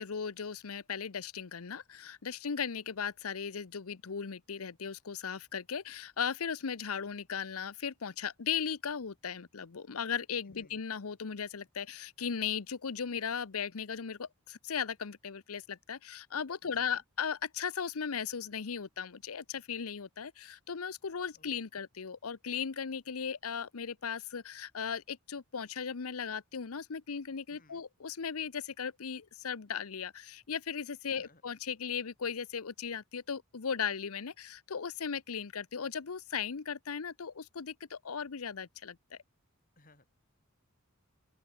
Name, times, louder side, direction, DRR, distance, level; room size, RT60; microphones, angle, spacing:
voice 1, 0.0-39.2, left 7 dB, 85° left, 0.8 m, -37 dB
voice 2, 10.5-10.8 16.6-17.0 21.3-21.6 27.5-27.8 31.2-31.4 39.8-40.1, left 2 dB, 40° left, 7.4 m, -62 dB
open air
head